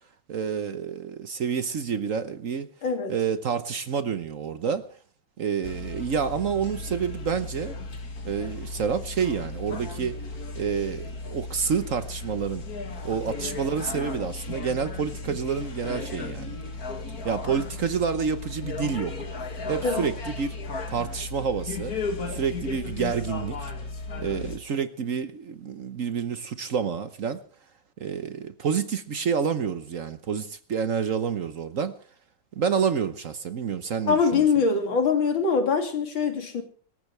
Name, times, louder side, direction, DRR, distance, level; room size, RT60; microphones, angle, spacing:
voice 1, 0.3-2.7 3.1-4.8 5.4-7.7 8.2-10.2 10.6-12.6 13.0-16.6 17.2-19.2 19.7-20.5 20.9-21.9 22.3-23.7 24.2-27.4 28.0-31.9 32.5-34.5, right 6 dB, 50° right, 1.1 m, -28 dB
voice 2, 2.8-3.1 19.8-20.1 34.1-36.6, left 5 dB, 90° left, 3.3 m, -23 dB
sound 1, 5.6-24.6, left 3 dB, 50° left, 2.5 m, -35 dB
25.0 x 14.0 x 3.3 m
omnidirectional pair, 2.1 m